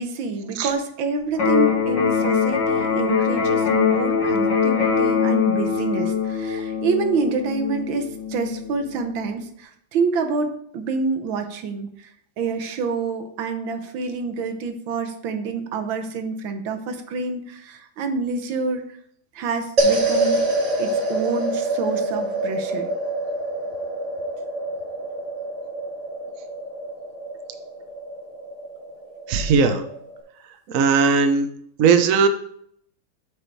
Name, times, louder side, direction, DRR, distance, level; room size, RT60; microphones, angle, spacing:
voice 1, 0.0-12.1 12.4-18.8 19.3-20.4 20.8-22.9, right 4 dB, 75° right, 7 dB, 1.6 m, -27 dB
Electric guitar, 1.3-9.3, left 6 dB, 60° left, 2.3 m, -22 dB
sound 1, 19.8-30.2, right 2 dB, 40° right, 1.7 m, -26 dB
voice 2, 29.3-29.8 30.7-31.5 31.8-32.3, right 5 dB, 60° right, 7 dB, 0.9 m, -18 dB
7.8 x 5.4 x 4.6 m, 0.67 s
omnidirectional pair, 2.3 m